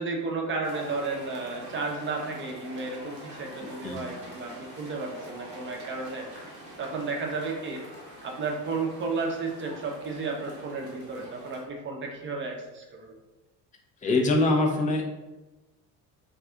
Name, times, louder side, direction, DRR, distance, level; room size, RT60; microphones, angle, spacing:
voice 1, 0.0-6.2 6.8-7.8 8.2-13.1 14.0-14.3, right 3 dB, 25° right, 1 dB, 0.6 m, -33 dB
sound 1, 0.6-11.6, right 1 dB, 85° right, 0.8 m, -45 dB
voice 2, 3.6-4.0 14.0-15.1, left 2 dB, 15° left, 1 dB, 0.4 m, -24 dB
2.4 x 2.4 x 3.5 m, 1.1 s
figure-of-eight pair, 55°, 49 cm